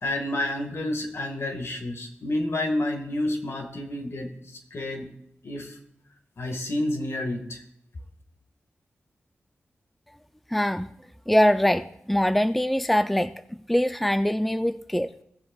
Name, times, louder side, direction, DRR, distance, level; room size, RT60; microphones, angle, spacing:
voice 1, 0.0-5.1 5.4-5.8 6.4-7.6, left 1 dB, 65° left, 4 dB, 1.6 m, -30 dB
voice 2, 10.5-10.9 11.3-13.3 13.7-15.1, equal, 5° left, 10 dB, 0.3 m, -23 dB
17.5 x 7.6 x 2.3 m, 0.73 s
wide cardioid pair, 105°, 5 cm